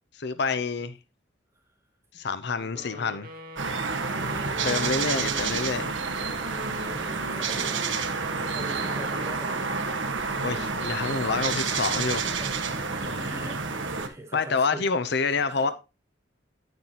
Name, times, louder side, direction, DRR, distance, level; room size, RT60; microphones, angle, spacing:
voice 1, 0.1-0.9 2.1-3.3 4.6-5.9 10.4-12.2 14.3-15.7, left 4 dB, 60° left, 0.7 m, -27 dB
voice 2, 2.5-2.9 4.6-5.4 6.6-9.9 11.9-15.7, right 1 dB, 15° right, 3.1 m, -43 dB
sound 1, 2.7-9.5, right 1 dB, 50° right, 2.0 m, -43 dB
sound 2, 3.6-14.1, right 4 dB, 85° right, 1.4 m, -29 dB
9.7 x 9.4 x 2.9 m
head